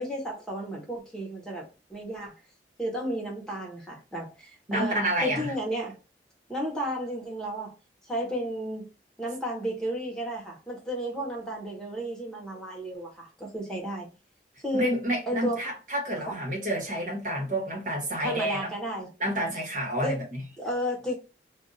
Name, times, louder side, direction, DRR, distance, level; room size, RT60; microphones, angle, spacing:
voice 1, 0.0-2.3 2.8-6.0 6.5-7.7 8.0-8.9 9.2-14.1 14.6-15.6 16.3-16.4 18.2-19.1 20.0-20.2 20.6-21.1, equal, 5° left, 1.0 m, -33 dB
voice 2, 4.7-5.5 14.7-18.7 19.2-20.4, right 1 dB, 45° right, 1.2 m, -29 dB
2.5 x 2.5 x 4.0 m
head